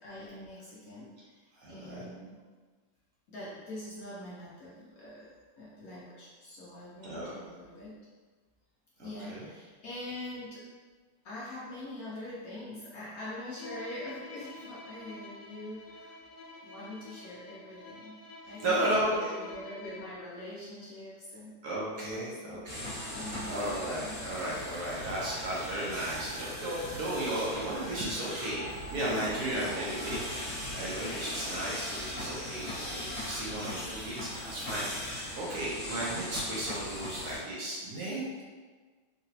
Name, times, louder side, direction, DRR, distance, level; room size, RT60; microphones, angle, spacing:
voice 1, 0.0-2.4 3.3-5.3 5.6-8.0 9.0-10.6 11.2-16.2 16.6-18.2 18.5-21.6 21.9-22.7 23.0-23.5 24.0-24.4 29.0-29.3, left 1 dB, 65° left, -8 dB, 1.0 m, -44 dB
voice 2, 1.6-2.0 7.0-7.3 9.0-9.5 18.6-19.3 21.6-23.0 23.4-38.4, right 1 dB, 65° right, -6 dB, 1.1 m, -34 dB
Bowed string instrument, 13.6-20.2, left 2 dB, 85° left, 0.7 m, -48 dB
sound 1, 22.7-37.4, left 1 dB, 35° left, 1.3 m, -39 dB
3.9 x 2.3 x 2.8 m, 1.4 s
omnidirectional pair, 2.0 m